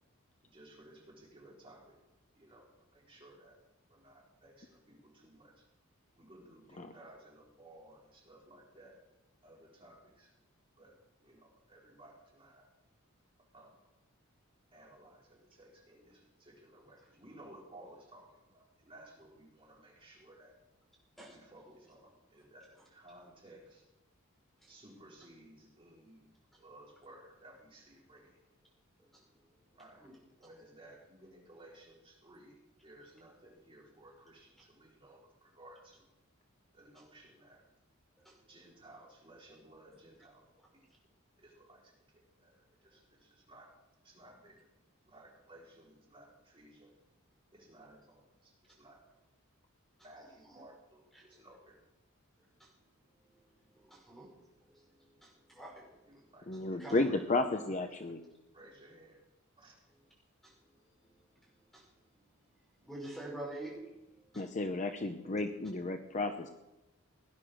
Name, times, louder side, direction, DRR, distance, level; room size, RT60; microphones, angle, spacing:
voice 1, 0.4-2.0 2.3-3.6 3.9-5.7 6.1-9.0 9.4-10.3 10.8-11.0 11.2-12.7 13.5-13.8 14.7-20.6 21.3-23.8 24.7-26.2 26.6-28.4 29.7-36.1 36.7-37.6 38.5-40.5 40.7-40.9 41.4-43.7 44.0-44.6 45.1-46.9 47.5-49.0 50.0-51.8 56.0-57.8 58.5-59.2 59.6-59.8, right 1 dB, 25° right, -3 dB, 4.3 m, -57 dB
voice 2, 53.9-54.3 54.7-54.8 55.2-55.9 56.8-57.0 60.4-60.5 61.7-61.8 62.8-63.8 64.3-64.4, right 1 dB, ahead, -4 dB, 5.9 m, -45 dB
voice 3, 56.5-58.2 64.3-66.5, left 2 dB, 35° left, 7 dB, 0.8 m, -33 dB
18.0 x 10.5 x 6.4 m, 0.98 s
head